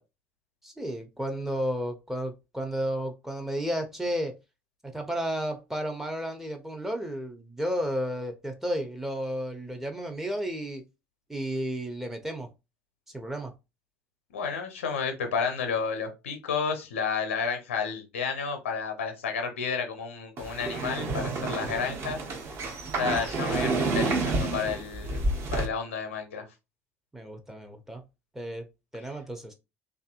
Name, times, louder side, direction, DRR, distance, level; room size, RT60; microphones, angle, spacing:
voice 1, 0.6-4.3 4.8-10.8 11.3-12.5 13.1-13.5 27.1-28.0 28.3-28.7 28.9-29.5, equal, 5° right, 0.6 m, -32 dB
voice 2, 14.3-22.2 23.0-25.2 25.5-26.4, left 6 dB, 75° left, 0.6 m, -31 dB
sound 1, 20.4-25.7, right 3 dB, 40° right, 0.7 m, -29 dB
2.6 x 2.4 x 2.4 m
figure-of-eight pair, 60°, 7 cm